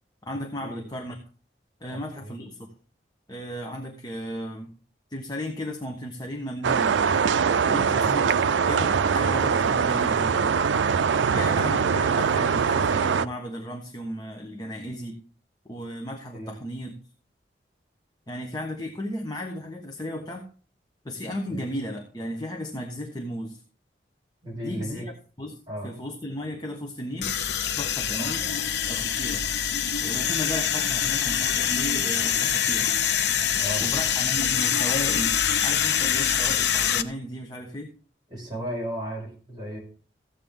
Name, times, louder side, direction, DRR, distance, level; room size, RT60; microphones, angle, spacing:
voice 1, 0.2-1.2 1.8-2.7 3.3-4.7 5.1-7.0 7.6-10.5 11.3-15.2 15.6-17.0 18.3-20.5 21.0-23.6 24.6-25.0 25.4-27.3 27.8-28.5 28.9-29.4 30.0-32.9 33.8-35.3 35.6-37.9, equal, 20° left, 1 dB, 1.2 m, -35 dB
voice 2, 1.9-2.4 7.8-8.1 11.1-11.7 16.3-16.6 21.5-21.6 24.4-25.1 25.7-25.9 28.1-28.3 33.6-33.8 38.3-39.8, equal, 25° right, -3 dB, 5.4 m, -35 dB
sound 1, 6.6-13.3, right 6 dB, 90° right, 0.4 m, -22 dB
sound 2, 27.2-37.0, left 9 dB, 70° left, 0.8 m, -25 dB
14.5 x 8.5 x 3.7 m, 0.40 s
head